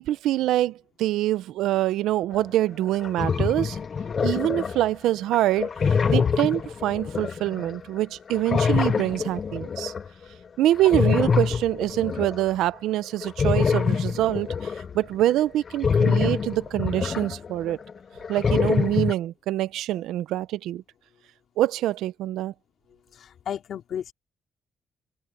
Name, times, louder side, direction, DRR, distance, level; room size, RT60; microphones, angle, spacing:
voice 1, 0.0-3.8 4.2-9.9 10.6-17.8 18.3-20.8 21.6-22.5, right 14 dB, 90° right, 0.7 m, -25 dB
sound 1, 2.4-2.5 2.9-4.9 5.3-8.0 8.3-10.1 10.7-12.6 13.2-17.9 18.2-19.1, left 6 dB, 45° left, 0.6 m, -25 dB
voice 2, 23.1-24.1, left 9 dB, 65° left, 3.3 m, -35 dB
cardioid pair, 90°, 0 cm